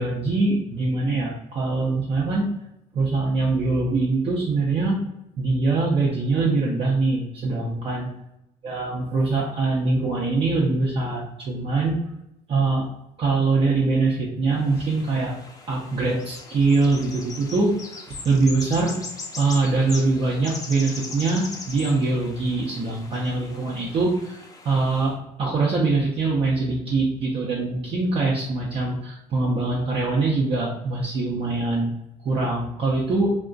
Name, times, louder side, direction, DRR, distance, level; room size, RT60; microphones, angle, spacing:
voice 1, 0.0-2.5 2.9-5.0 5.4-8.1 8.6-12.0 12.5-12.9 13.2-15.3 15.7-17.7 18.1-19.0 19.4-24.4 24.6-31.9 32.2-33.3, right 3 dB, 40° right, -4 dB, 0.6 m, -23 dB
sound 1, 14.6-25.1, left 3 dB, 25° left, 0.5 m, -40 dB
2.4 x 2.1 x 3.8 m, 0.84 s
cardioid pair, 105°, 14 cm